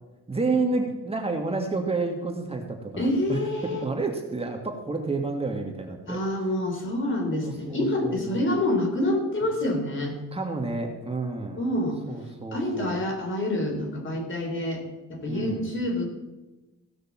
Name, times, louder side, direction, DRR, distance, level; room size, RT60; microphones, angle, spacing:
voice 1, 0.3-6.2 7.3-8.3 10.3-11.6 12.1-13.0 15.3-15.7, right 3 dB, 20° right, 2 dB, 1.9 m, -30 dB
voice 2, 3.0-3.8 6.1-10.2 11.5-12.0 12.5-14.8 15.1-16.1, left 1 dB, 40° left, 2 dB, 3.7 m, -27 dB
16.5 x 6.3 x 7.3 m, 1.1 s
cardioid pair, 90°, 30 cm